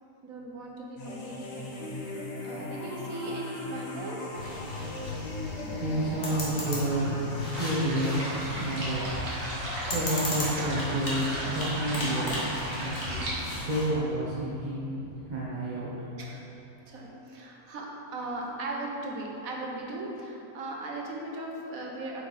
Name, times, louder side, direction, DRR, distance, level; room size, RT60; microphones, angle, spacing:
voice 1, 0.2-1.9 2.4-4.3 10.6-11.2 16.2-16.4 16.9-22.2, right 2 dB, 70° right, -1 dB, 1.4 m, -38 dB
sound 1, 1.0-7.8, left 3 dB, 35° left, 0.7 m, -38 dB
sound 2, 4.3-13.9, left 2 dB, 55° left, 1.7 m, -37 dB
voice 2, 5.6-7.3 7.6-13.3 13.6-15.9, right 1 dB, 35° right, -8 dB, 1.0 m, -30 dB
sound 3, 7.5-13.3, right 1 dB, 50° right, 1.8 m, -36 dB
7.7 x 5.5 x 4.1 m, 2.8 s
omnidirectional pair, 1.5 m